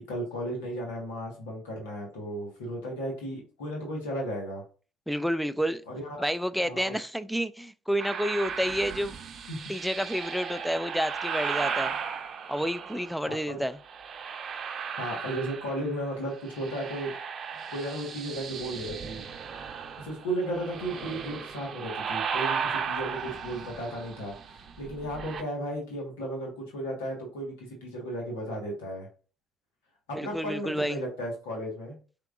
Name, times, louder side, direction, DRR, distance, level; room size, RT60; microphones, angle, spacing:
voice 1, 0.0-4.6 5.9-6.3 6.6-7.0 9.5-9.6 13.3-13.6 15.0-17.1 17.7-19.2 20.0-29.1 30.1-31.9, right 1 dB, 85° left, 1.4 m, -35 dB
voice 2, 5.1-5.8 6.2-9.2 9.7-11.9 12.5-13.8 30.1-31.0, equal, ahead, 0.4 m, -29 dB
sound 1, 8.0-13.3 13.8-16.1 16.3-25.4, right 6 dB, 50° right, 0.6 m, -36 dB
4.5 x 3.7 x 2.5 m
hypercardioid pair, 60°, 0 cm